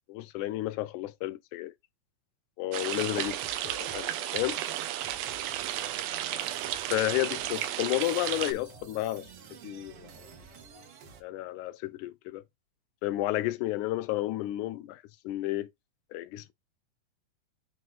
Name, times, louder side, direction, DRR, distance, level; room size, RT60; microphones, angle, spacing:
voice 1, 0.1-1.7 2.6-3.4 3.6-4.6 6.9-9.3 9.6-10.1 11.2-12.4 13.0-15.7 16.1-16.5, left 16 dB, 80° left, 2.0 m, -32 dB
sound 1, 2.7-8.5, right 12 dB, 85° right, 2.1 m, -33 dB
sound 2, 2.9-11.2, right 5 dB, 60° right, 1.8 m, -51 dB
7.8 x 3.1 x 4.5 m
omnidirectional pair, 3.6 m